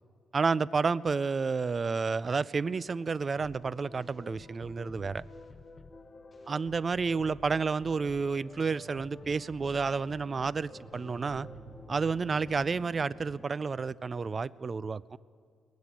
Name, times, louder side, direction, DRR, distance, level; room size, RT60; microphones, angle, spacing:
voice 1, 0.3-5.2 6.5-11.5 11.9-15.2, right 4 dB, 35° right, 19 dB, 0.3 m, -30 dB
sound 1, 3.3-13.5, right 3 dB, 5° left, 1.6 m, -54 dB
sound 2, 3.4-13.5, left 3 dB, 35° left, 0.7 m, -51 dB
19.5 x 7.8 x 8.3 m, 2.2 s
cardioid pair, 90°, 0 cm